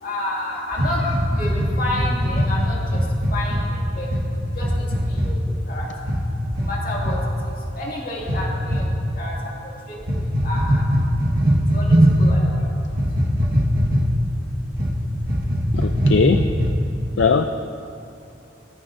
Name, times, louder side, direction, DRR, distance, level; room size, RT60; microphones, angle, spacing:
voice 1, 0.0-2.7 3.3-3.6 4.0-4.1 4.6-5.2 5.7-5.9 6.6-7.2 7.8-8.8 9.2-9.3 9.9-10.0 10.4-10.8 11.7-12.6, left 1 dB, 50° left, -4 dB, 2.3 m, -29 dB
sound 1, 0.7-3.6 4.1-4.2 4.6-5.3 6.0-6.2 6.5-6.7 7.0-7.2 8.2-8.8 10.0-12.3 12.9-14.3 14.7-14.9 15.2-16.9, equal, 55° right, 1.6 m, -20 dB
voice 2, 15.7-16.4 17.2-17.4, left 5 dB, 75° left, 8 dB, 0.4 m, -19 dB
23.5 x 10.5 x 2.6 m, 2.7 s
head